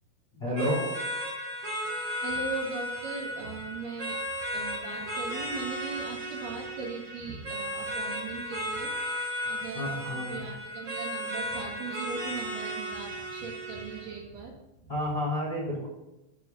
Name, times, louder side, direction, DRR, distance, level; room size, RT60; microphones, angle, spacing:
voice 1, 0.3-0.8 9.7-10.4 14.9-15.9, equal, 15° left, -6 dB, 3.4 m, -30 dB
sound 1, 0.6-14.1, equal, 45° right, 3.5 m, -35 dB
voice 2, 2.2-4.2 4.5-8.9 9.5-15.0, right 4 dB, 70° right, -1 dB, 3.4 m, -39 dB
8.3 x 6.6 x 7.4 m, 0.96 s
omnidirectional pair, 4.3 m